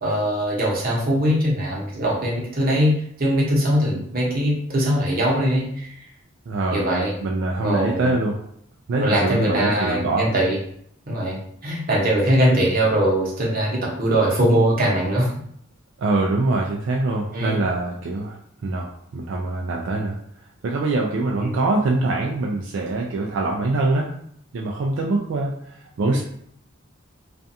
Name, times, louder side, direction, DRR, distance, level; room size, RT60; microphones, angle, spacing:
voice 1, 0.0-5.9 6.7-7.1 7.6-8.1 9.0-10.6 11.1-15.3 17.3-17.6 21.4-21.6 26.1-26.2, equal, 50° right, -3 dB, 0.8 m, -21 dB
voice 2, 6.5-7.0 7.2-8.4 8.9-10.2 16.0-18.4 18.6-20.2 20.6-24.1 24.5-25.5 26.0-26.2, right 2 dB, 70° right, -1 dB, 0.3 m, -23 dB
2.4 x 2.2 x 2.7 m, 0.66 s
head